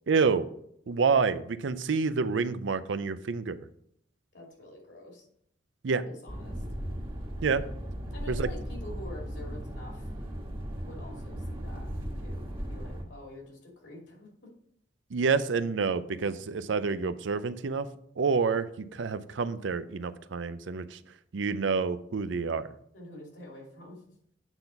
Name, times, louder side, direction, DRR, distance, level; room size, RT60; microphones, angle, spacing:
voice 1, 0.1-0.5 0.9-3.6 5.8-6.0 7.4-7.6 8.3-8.5 15.1-17.9 18.2-21.0 21.3-22.7, right 5 dB, 75° right, 13 dB, 0.5 m, -28 dB
voice 2, 4.3-5.3 5.9-6.6 8.1-10.4 10.8-11.9 12.2-14.3 22.9-24.0, left 1 dB, 70° left, -2 dB, 2.7 m, -47 dB
sound 1, 6.3-13.0, equal, 25° right, 1.5 m, -37 dB
8.9 x 4.0 x 5.7 m, 0.70 s
head